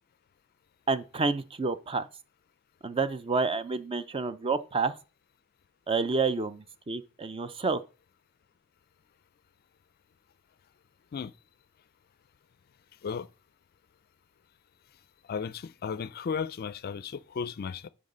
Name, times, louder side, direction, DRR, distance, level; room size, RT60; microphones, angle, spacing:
voice 1, 0.9-2.1 2.8-4.9 5.9-7.8, right 4 dB, 25° right, 0.5 m, -29 dB
voice 2, 15.2-17.9, left 6 dB, 45° left, 0.4 m, -35 dB
8.8 x 3.9 x 5.5 m
head